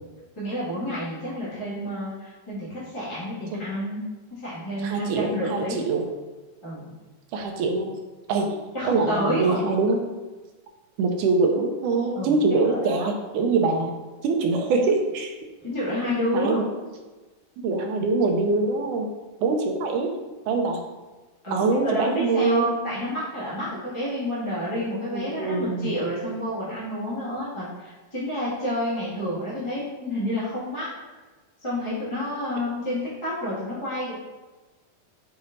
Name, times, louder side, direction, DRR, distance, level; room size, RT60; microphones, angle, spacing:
voice 1, 0.3-4.0 4.3-5.8 6.6-6.9 8.7-9.6 12.1-13.1 15.6-16.6 21.4-30.9 31.6-34.1, equal, 15° left, -10 dB, 1.1 m, -29 dB
voice 2, 4.8-6.0 7.3-8.0 8.3-8.6 8.9-10.0 11.0-13.9 14.2-15.3 16.3-16.7 17.6-19.1 19.4-20.8 21.5-22.7 25.1-25.9, right 3 dB, 75° right, 2 dB, 2.1 m, -24 dB
7.1 x 4.2 x 3.9 m, 1.2 s
omnidirectional pair, 4.0 m